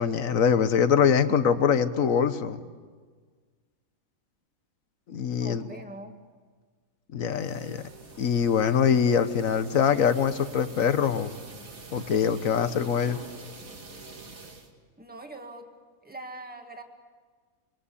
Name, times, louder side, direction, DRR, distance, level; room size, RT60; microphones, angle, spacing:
voice 1, 0.0-2.6 5.1-5.6 7.1-7.8 8.2-11.3 11.9-13.2, left 7 dB, 70° left, 11 dB, 1.5 m, -23 dB
voice 2, 5.2-6.2 15.0-15.7 16.0-16.8, right 2 dB, 5° right, 4 dB, 1.9 m, -42 dB
sound 1, 7.2-14.7, right 3 dB, 75° right, 2.6 m, -46 dB
26.5 x 22.5 x 8.6 m, 1.5 s
omnidirectional pair, 1.5 m